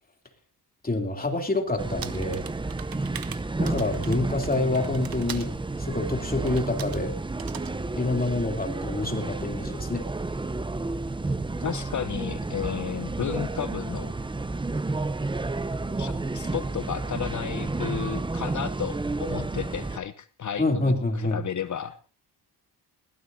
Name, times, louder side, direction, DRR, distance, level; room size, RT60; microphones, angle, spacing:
voice 1, 0.8-2.4 3.6-7.1 8.0-10.1 20.6-21.4, left 2 dB, 20° left, 4 dB, 3.2 m, -27 dB
sound 1, 1.8-20.0, right 3 dB, 10° right, 0.7 m, -31 dB
sound 2, 2.0-5.5 6.5-7.0 7.4-7.7, right 9 dB, 60° right, 1.2 m, -41 dB
voice 2, 11.6-14.1 16.0-21.9, left 8 dB, 45° left, 12 dB, 0.9 m, -33 dB
21.0 x 16.5 x 2.8 m, 0.36 s
cardioid pair, 95°, 40 cm